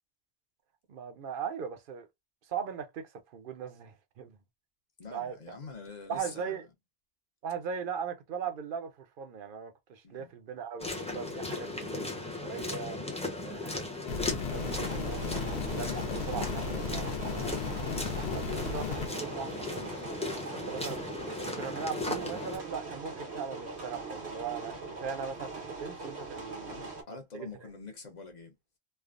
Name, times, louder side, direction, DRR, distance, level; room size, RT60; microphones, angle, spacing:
voice 1, 0.9-2.1 2.5-4.4 5.1-5.6 6.1-6.6 7.4-12.1 12.4-13.8 14.4-17.6 18.2-19.9 20.5-21.0 21.4-26.8 27.1-27.5, right 6 dB, 60° right, 0.7 m, -39 dB
voice 2, 5.0-6.6 10.0-10.3 26.7-28.5, left 4 dB, 45° left, 0.9 m, -46 dB
sound 1, 10.8-22.6, left 2 dB, 5° left, 0.6 m, -37 dB
sound 2, 14.1-19.1, left 5 dB, 80° left, 0.8 m, -35 dB
sound 3, 14.5-27.0, right 3 dB, 90° right, 1.3 m, -41 dB
3.3 x 2.1 x 2.4 m
omnidirectional pair, 1.1 m